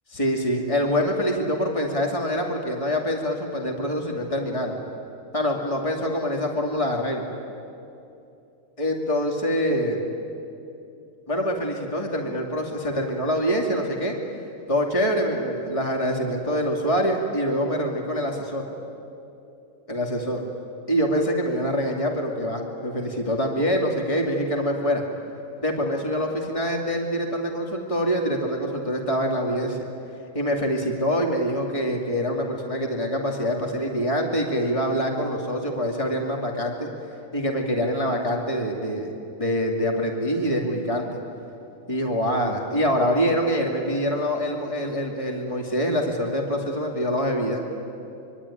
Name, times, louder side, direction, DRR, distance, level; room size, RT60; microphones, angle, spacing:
voice 1, 0.1-4.7 5.3-7.2 8.8-10.0 11.3-14.1 14.7-18.6 19.9-20.4 20.9-25.0 25.6-29.8 30.3-36.9 37.3-39.1 39.4-41.2 41.9-47.6, equal, 25° left, 1 dB, 2.6 m, -25 dB
25.0 x 24.0 x 10.0 m, 2.7 s
omnidirectional pair, 1.4 m